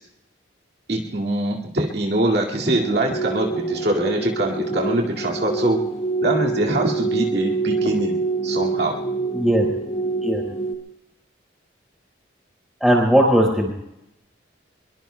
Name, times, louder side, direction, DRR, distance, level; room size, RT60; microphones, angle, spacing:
voice 1, 0.9-5.8 6.2-8.2 8.4-9.0, right 1 dB, 55° right, -1 dB, 2.2 m, -23 dB
sound 1, 2.6-10.7, right 3 dB, 35° left, 1.7 m, -26 dB
voice 2, 9.3-9.7 10.2-10.4 12.8-13.7, equal, ahead, -1 dB, 4.7 m, -17 dB
24.0 x 23.0 x 2.3 m, 0.85 s
head